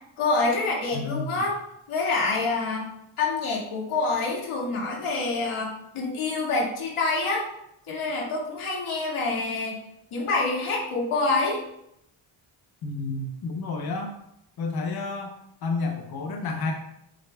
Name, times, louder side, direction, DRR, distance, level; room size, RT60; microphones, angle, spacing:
voice 1, 0.2-1.6 1.9-2.8 3.2-7.5 7.9-9.8 10.1-11.6, left 3 dB, 80° left, -2 dB, 2.2 m, -26 dB
voice 2, 0.9-1.4 12.8-14.1 14.6-15.3 15.6-16.7, left 3 dB, 50° left, 2 dB, 0.8 m, -30 dB
7.7 x 6.7 x 2.3 m, 0.76 s
cardioid pair, 125°, 49 cm